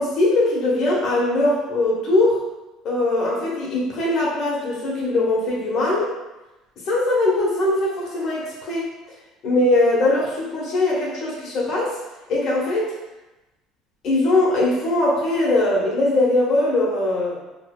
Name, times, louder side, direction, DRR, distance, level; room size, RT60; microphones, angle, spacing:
voice 1, 0.0-2.4 2.8-6.1 6.9-8.9 9.4-12.0 12.3-12.9 14.0-17.4, left 2 dB, 50° left, -4 dB, 0.8 m, -21 dB
2.6 x 2.1 x 2.3 m, 1.0 s
cardioid pair, 115°, 0 cm